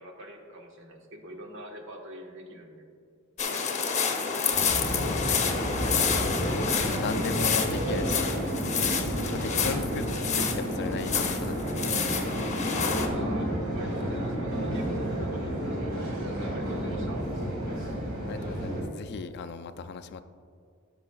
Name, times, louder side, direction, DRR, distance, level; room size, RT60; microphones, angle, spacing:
voice 1, 0.0-2.9 13.0-17.3, right 1 dB, 65° right, 0 dB, 1.3 m, -44 dB
sound 1, 3.4-13.1, left 6 dB, 35° left, 0.8 m, -29 dB
sound 2, 4.5-18.8, equal, 50° right, 2.1 m, -31 dB
voice 2, 4.9-8.4 8.7-10.1 10.3-12.3 18.3-20.2, left 5 dB, 55° left, 9 dB, 0.4 m, -38 dB
15.5 x 6.1 x 2.3 m, 2.3 s
head